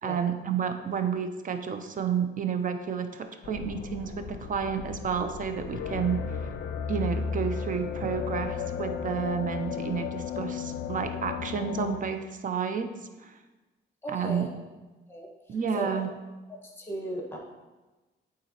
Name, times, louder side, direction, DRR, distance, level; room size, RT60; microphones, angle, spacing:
voice 1, 0.0-6.2 6.9-12.9 13.2-13.4 14.1-14.5 15.5-16.1, right 7 dB, 40° right, 7 dB, 0.6 m, -30 dB
sound 1, 3.4-12.0, left 6 dB, 65° left, 0.5 m, -34 dB
voice 2, 14.0-14.5 15.1-16.0 16.6-17.4, right 1 dB, 10° left, -1 dB, 1.4 m, -36 dB
8.6 x 3.8 x 2.9 m, 1.2 s
cardioid pair, 90°, 20 cm